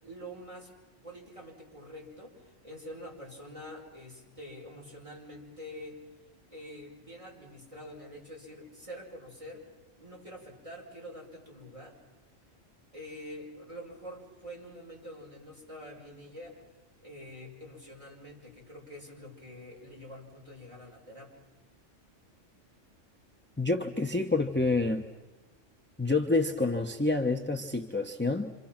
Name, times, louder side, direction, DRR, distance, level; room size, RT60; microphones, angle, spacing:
voice 1, 0.0-0.7 1.0-6.0 6.5-9.7 10.0-12.0 12.9-16.6 17.0-21.5, equal, 25° right, -3 dB, 5.6 m, -46 dB
voice 2, 23.6-25.1 26.0-28.5, left 3 dB, 10° left, 2 dB, 0.9 m, -28 dB
28.0 x 27.0 x 6.0 m, 1.1 s
omnidirectional pair, 1.3 m